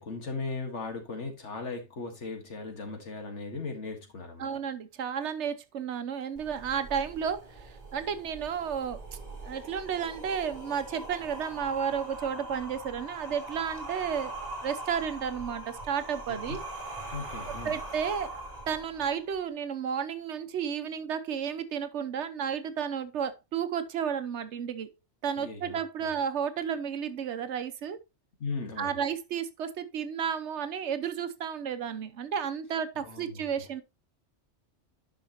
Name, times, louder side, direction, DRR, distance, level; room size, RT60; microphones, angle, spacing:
voice 1, 0.0-4.5 16.3-16.6 17.1-17.8 25.4-26.1 28.4-29.0 33.0-33.7, left 4 dB, 80° left, 2.0 m, -38 dB
voice 2, 4.4-9.0 9.4-16.6 17.5-24.9 25.2-28.0 28.8-33.8, right 7 dB, 75° right, 1.1 m, -32 dB
sound 1, 6.4-19.3, right 2 dB, 35° right, 2.1 m, -42 dB
10.5 x 5.8 x 2.9 m
omnidirectional pair, 1.2 m